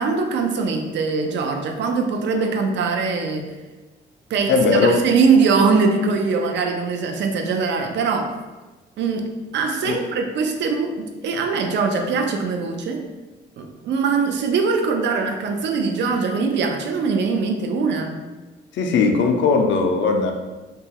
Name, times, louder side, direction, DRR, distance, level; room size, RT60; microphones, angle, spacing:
voice 1, 0.0-3.5 4.3-8.3 9.0-13.0 13.6-18.2, right 4 dB, 65° right, 4 dB, 0.4 m, -22 dB
voice 2, 4.5-5.0 9.8-10.0 18.8-20.3, left 4 dB, 70° left, 4 dB, 0.4 m, -18 dB
2.9 x 2.3 x 2.8 m, 1.2 s
cardioid pair, 90°, 20 cm